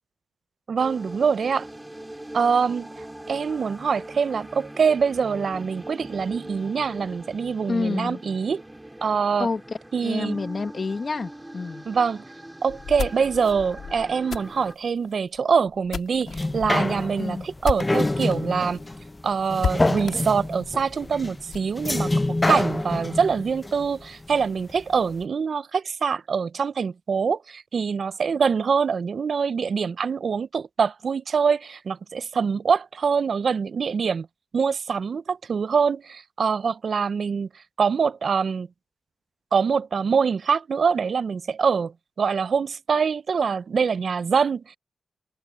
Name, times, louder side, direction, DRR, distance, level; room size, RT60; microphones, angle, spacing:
voice 1, 0.7-1.7 2.3-2.9 3.3-8.6 9.0-9.5 9.9-10.4 11.9-12.2 12.6-18.8 19.2-22.1 22.5-34.3 34.5-38.7 39.5-44.8, right 6 dB, 65° right, 0.5 m, -24 dB
sound 1, 0.8-14.8, right 1 dB, 10° right, 2.8 m, -41 dB
voice 2, 7.7-8.2 9.4-9.6 10.0-11.9 17.2-17.5, left 4 dB, 50° left, 1.6 m, -28 dB
sound 2, 12.7-18.4 18.7-18.8 19.1-19.2 19.6-21.7, left 6 dB, 85° left, 1.9 m, -34 dB
sound 3, 16.3-24.8 25.2-25.3, left 2 dB, 25° left, 0.8 m, -27 dB
cardioid pair, 70°, 0 cm